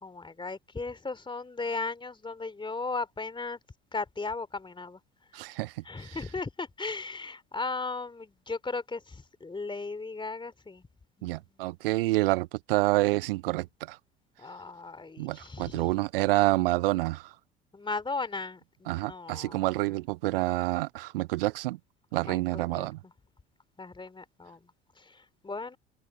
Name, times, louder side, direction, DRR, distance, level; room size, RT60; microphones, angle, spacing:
voice 1, 0.0-3.6 3.9-5.0 5.8-10.8 11.2-11.3 14.4-15.8 17.7-19.6 22.1-22.9 23.8-24.6 25.0-25.8, left 3 dB, 15° left, 2.9 m, -36 dB
voice 2, 5.3-5.7 6.0-6.2 11.2-14.0 15.2-17.3 18.9-21.8 22.1-23.0, right 19 dB, 65° right, 0.6 m, -28 dB
open air
figure-of-eight pair, 60°, 31 cm